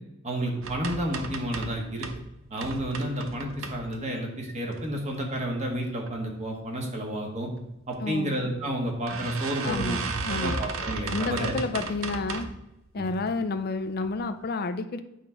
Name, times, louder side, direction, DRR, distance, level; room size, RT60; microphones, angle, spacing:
voice 1, 0.2-2.1 2.5-7.5 7.9-10.0 10.3-11.5 13.0-13.1, right 1 dB, 35° right, 0 dB, 1.5 m, -31 dB
sound 1, 0.6-2.2 2.6-4.2 4.7-5.3 5.7-6.1 6.4-6.5 6.8-6.9 7.9-8.0 8.4-8.5 9.1-12.6 13.1-13.5 14.0-14.1 14.4-14.5, right 4 dB, 85° right, 0.8 m, -35 dB
voice 2, 8.0-8.3 9.6-10.6 11.1-12.5 12.9-15.0, left 3 dB, 50° left, 9 dB, 0.5 m, -30 dB
8.9 x 3.7 x 5.7 m, 0.88 s
head